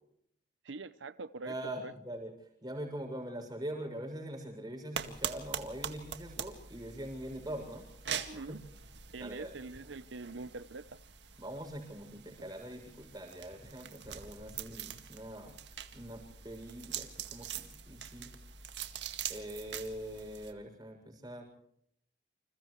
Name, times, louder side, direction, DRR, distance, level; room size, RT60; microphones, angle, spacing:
voice 1, 0.6-1.9 8.3-8.6 9.1-11.0, right 3 dB, 85° right, 0.8 m, -44 dB
voice 2, 1.4-2.3 2.6-7.9 8.3-8.6 9.2-9.6 11.4-15.6 15.9-18.3 19.3-21.4, right 1 dB, 20° right, 7.0 m, -43 dB
sound 1, 4.9-20.5, right 8 dB, 70° right, 2.0 m, -44 dB
29.0 x 28.0 x 3.2 m
head